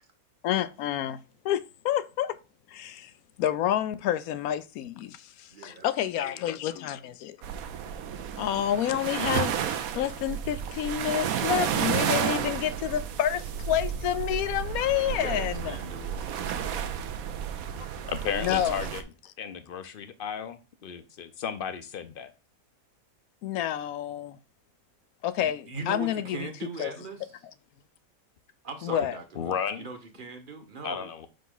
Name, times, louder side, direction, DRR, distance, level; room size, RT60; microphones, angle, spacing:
voice 1, 0.4-1.2 1.4-2.4 2.7-3.1 3.4-7.4 8.4-15.8 18.4-18.7 23.4-24.4 25.2-26.5 26.8-26.9 28.8-29.2, left 11 dB, 85° left, 1.1 m, -29 dB
voice 2, 5.5-6.4 6.8-6.9 15.0-16.7 25.4-27.3 28.6-31.1, right 3 dB, 40° right, 1.1 m, -41 dB
sound 1, 7.4-19.0, right 8 dB, 80° right, 1.1 m, -32 dB
voice 3, 17.8-19.0 19.4-22.3 29.0-29.1 29.3-29.9 30.8-31.3, left 7 dB, 55° left, 0.7 m, -34 dB
5.5 x 5.2 x 3.9 m
omnidirectional pair, 1.5 m